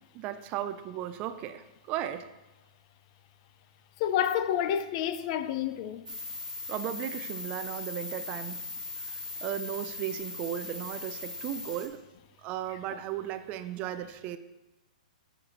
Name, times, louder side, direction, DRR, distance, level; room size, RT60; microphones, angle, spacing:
voice 1, 0.1-2.3 6.7-8.7 9.0-12.0 12.4-14.4, right 11 dB, 30° right, 0.4 m, -36 dB
voice 2, 4.0-6.1, left 10 dB, 40° left, 0.6 m, -29 dB
sound 1, 6.1-11.9, left 3 dB, 75° right, 1.3 m, -39 dB
10.0 x 6.5 x 3.0 m
hypercardioid pair, 140°, 4 cm